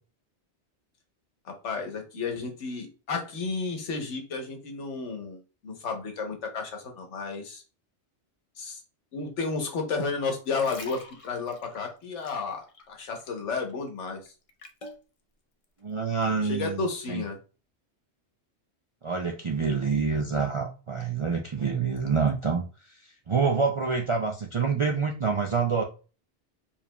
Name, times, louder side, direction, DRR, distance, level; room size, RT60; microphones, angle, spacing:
voice 1, 1.4-7.6 8.6-8.8 9.1-14.3 16.4-17.4, left 4 dB, 85° left, 4 dB, 1.3 m, -32 dB
sound 1, 10.3-13.3 13.6-15.0 15.6-15.8, left 2 dB, 40° left, 0.5 m, -46 dB
voice 2, 15.8-17.2 19.0-22.6 23.3-25.8, right 5 dB, 55° right, 0 dB, 0.3 m, -27 dB
4.8 x 3.4 x 2.2 m, 0.34 s
omnidirectional pair, 1.2 m